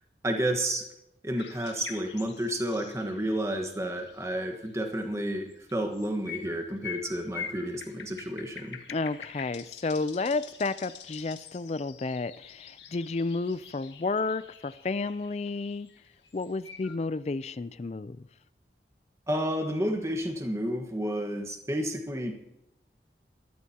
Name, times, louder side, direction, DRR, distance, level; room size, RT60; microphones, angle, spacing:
voice 1, 0.2-0.8 1.2-8.8 19.3-22.3, right 1 dB, 15° right, 4 dB, 1.3 m, -31 dB
sound 1, 1.4-4.9 5.5-16.9, left 7 dB, 85° left, 1.7 m, -46 dB
voice 2, 8.9-15.9 16.3-18.3, left 3 dB, 35° left, 15 dB, 0.4 m, -31 dB
21.0 x 14.0 x 2.9 m, 0.86 s
head